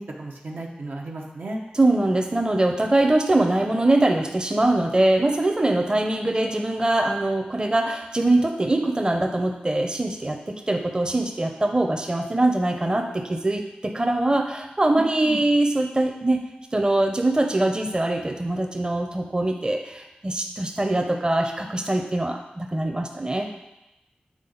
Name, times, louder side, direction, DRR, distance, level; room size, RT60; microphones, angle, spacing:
voice 1, 0.0-1.6 14.9-15.4, right 1 dB, 85° right, -1 dB, 0.9 m, -34 dB
voice 2, 1.7-23.5, right 2 dB, 25° right, 3 dB, 0.6 m, -23 dB
7.4 x 3.8 x 3.9 m, 0.96 s
wide cardioid pair, 55°, 3 cm